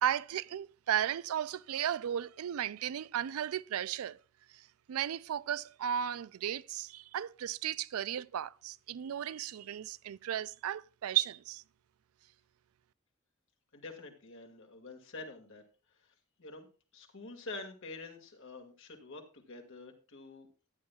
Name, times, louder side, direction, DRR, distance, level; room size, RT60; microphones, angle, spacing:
voice 1, 0.0-4.2 4.5-11.6, right 10 dB, 80° right, 0.4 m, -35 dB
voice 2, 13.7-15.6 16.4-16.7 16.9-20.5, left 3 dB, 60° left, 2.0 m, -47 dB
14.5 x 9.6 x 2.3 m
head